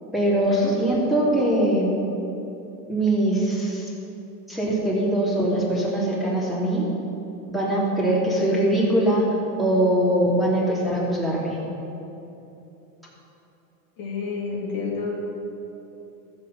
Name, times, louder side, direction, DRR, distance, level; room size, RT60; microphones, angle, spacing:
voice 1, 0.1-1.9 2.9-3.9 4.5-6.8 7.5-9.3 9.6-11.6, right 1 dB, ahead, -8 dB, 3.1 m, -22 dB
voice 2, 14.0-15.3, left 4 dB, 45° left, -4 dB, 2.9 m, -29 dB
14.0 x 7.7 x 5.6 m, 3.0 s
supercardioid pair, 120°, 47 cm